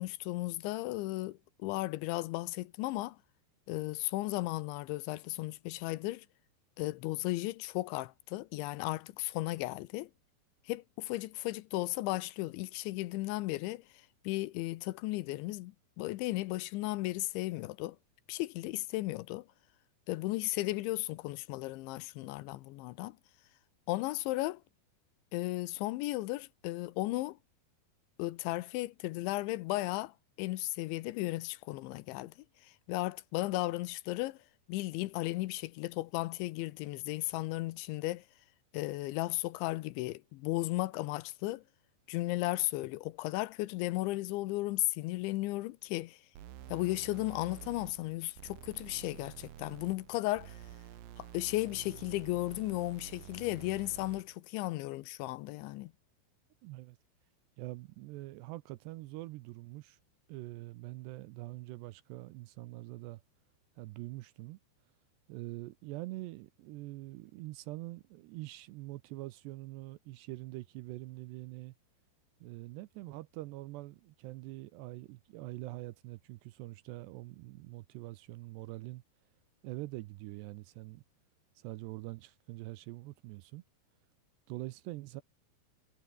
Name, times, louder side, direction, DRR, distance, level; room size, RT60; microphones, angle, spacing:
voice 1, 0.0-3.2 3.7-6.3 6.8-10.1 10.7-13.8 14.2-18.0 18.3-19.5 20.1-23.2 23.9-24.6 25.3-27.4 28.2-32.3 32.6-34.4 34.7-38.2 38.7-41.6 42.1-46.2 46.7-50.6 51.2-55.9, left 19 dB, 85° left, 3.1 m, -35 dB
sound 1, 46.3-54.3, right 11 dB, 60° right, 3.0 m, -50 dB
voice 2, 56.6-57.0 57.6-60.0 60.3-63.2 63.8-64.6 65.3-71.7 72.4-79.0 79.6-81.0 81.6-83.6 84.5-85.2, right 19 dB, 80° right, 2.6 m, -44 dB
omnidirectional pair, 5.4 m